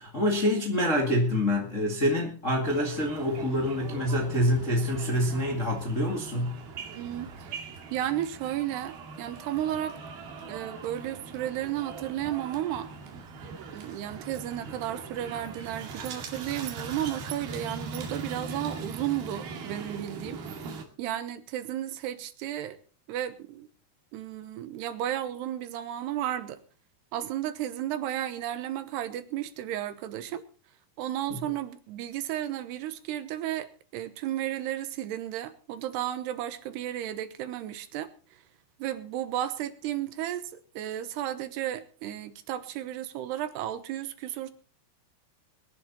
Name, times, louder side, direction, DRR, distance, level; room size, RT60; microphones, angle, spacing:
voice 1, 0.0-6.6 31.3-31.5, left 1 dB, 35° left, 1.2 m, -26 dB
sound 1, 2.6-20.8, right 4 dB, 65° right, 3.8 m, -41 dB
voice 2, 7.0-7.6 7.9-10.0 10.5-12.9 13.7-20.4 21.0-22.8 23.1-23.7 24.1-26.6 27.1-30.4 31.0-38.1 38.8-44.5, right 12 dB, 80° right, 3.1 m, -33 dB
22.0 x 11.0 x 4.1 m
omnidirectional pair, 4.8 m